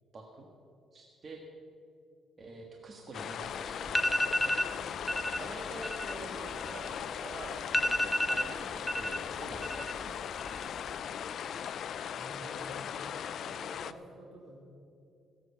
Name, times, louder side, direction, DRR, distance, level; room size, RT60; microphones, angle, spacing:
voice 1, 0.1-0.5 0.9-1.4 2.4-11.0 11.3-11.4, right 2 dB, 40° right, 0 dB, 1.6 m, -47 dB
sound 1, 3.1-13.9, left 8 dB, 65° left, 0.5 m, -39 dB
sound 2, 3.4-3.5 3.9-4.7 5.1-5.4 5.7-7.2 7.4-7.5 7.7-9.2 9.5-10.1 10.4-10.9, equal, ahead, 0.8 m, -30 dB
voice 2, 12.1-13.1 13.3-14.6, right 1 dB, 70° right, -1 dB, 4.0 m, -49 dB
16.0 x 8.1 x 7.2 m, 2.5 s
cardioid pair, 90°, 0 cm